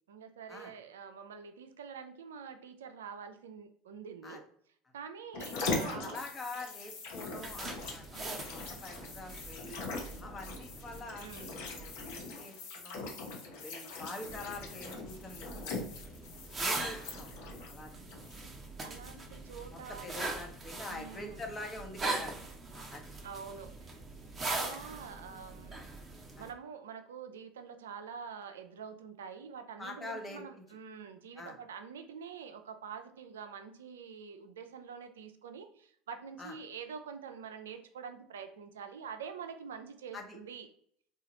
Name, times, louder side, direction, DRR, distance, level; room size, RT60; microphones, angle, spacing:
voice 1, 0.1-4.4 4.9-6.2 8.1-8.6 11.2-11.6 18.8-20.5 20.9-21.4 22.0-22.5 23.2-24.0 24.5-25.9 26.4-40.7, right 6 dB, 80° right, 7 dB, 0.4 m, -46 dB
sound 1, 5.3-18.7 19.1-19.2, left 3 dB, 65° left, 0.8 m, -41 dB
voice 2, 5.7-8.3 8.5-9.8 10.2-13.1 13.5-15.9 16.6-17.9 18.2-18.3 19.7-22.3 22.9-23.1 26.4-26.5 29.8-30.6 31.4-31.6 36.4-36.5 40.1-40.4, left 2 dB, 25° left, 3 dB, 0.9 m, -45 dB
sound 2, 7.4-12.2 14.2-26.5, right 2 dB, 25° right, 0.8 m, -41 dB
3.8 x 2.4 x 2.8 m, 0.65 s
hypercardioid pair, 75°, 0 cm